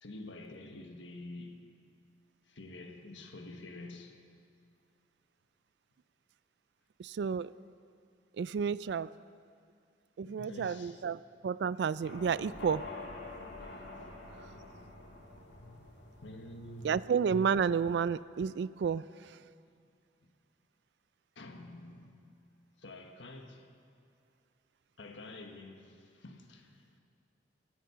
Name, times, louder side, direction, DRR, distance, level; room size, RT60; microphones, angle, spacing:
voice 1, 0.0-1.7 2.5-4.2 10.2-11.0 16.2-17.0 20.2-20.3 21.3-22.3 22.8-23.7 25.0-27.0, left 2 dB, 85° left, 1.4 m, -48 dB
voice 2, 7.0-7.5 8.4-9.1 10.2-12.8 16.8-19.4, right 6 dB, 65° right, 0.3 m, -31 dB
sound 1, 12.0-18.1, left 2 dB, 65° left, 2.5 m, -48 dB
24.0 x 9.5 x 5.7 m
head